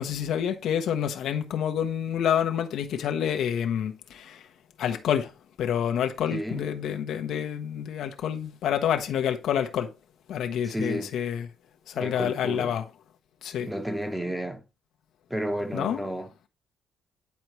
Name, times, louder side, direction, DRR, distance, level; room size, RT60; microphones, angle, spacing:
voice 1, 0.0-4.4 4.8-5.3 5.6-9.9 10.3-11.5 11.9-12.8 13.4-13.7 15.7-16.1, left 9 dB, 75° left, 0.8 m, -28 dB
voice 2, 6.3-6.6 10.6-11.1 11.9-12.7 13.7-14.7 15.3-16.5, equal, 5° right, 1.1 m, -32 dB
9.4 x 4.4 x 3.1 m
cardioid pair, 90°, 0 cm